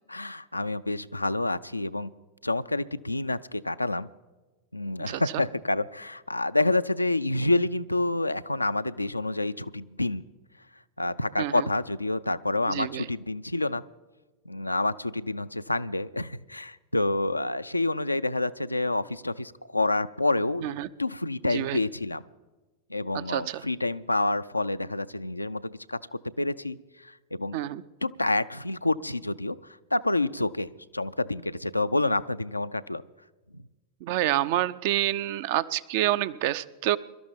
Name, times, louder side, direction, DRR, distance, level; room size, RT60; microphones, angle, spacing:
voice 1, 0.1-2.1 2.4-4.1 4.7-10.3 11.0-13.8 14.5-20.7 21.0-22.2 22.9-26.8 27.0-27.6 28.0-33.0, left 2 dB, 85° left, 13 dB, 0.4 m, -28 dB
voice 2, 5.1-5.4 11.4-11.7 12.7-13.1 20.6-20.9 21.4-21.8 23.1-23.6 27.5-27.8 34.0-37.0, right 14 dB, 50° right, 16 dB, 0.4 m, -28 dB
23.0 x 12.5 x 3.5 m, 1.2 s
figure-of-eight pair, 90°, 0 cm